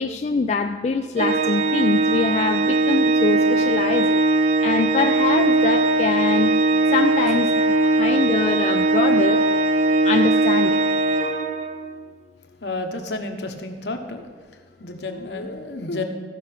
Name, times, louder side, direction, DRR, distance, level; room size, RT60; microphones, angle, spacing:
voice 1, 0.0-9.4 10.0-10.8, left 4 dB, 35° left, 6 dB, 0.3 m, -24 dB
Organ, 1.2-11.9, right 2 dB, 40° right, 0.4 m, -20 dB
voice 2, 12.6-14.2 14.8-16.0, left 2 dB, 70° left, 5 dB, 1.1 m, -30 dB
14.0 x 5.7 x 5.9 m, 1.5 s
head